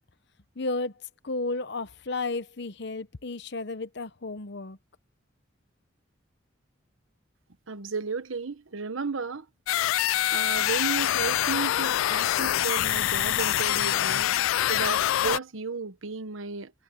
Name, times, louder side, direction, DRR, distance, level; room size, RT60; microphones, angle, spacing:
voice 1, 0.6-0.9 1.2-4.8, left 3 dB, 55° left, 0.9 m, -33 dB
voice 2, 7.7-9.5 10.3-14.3 14.7-16.7, right 4 dB, 85° right, 1.1 m, -33 dB
sound 1, 9.7-15.4, left 13 dB, 85° left, 0.3 m, -25 dB
head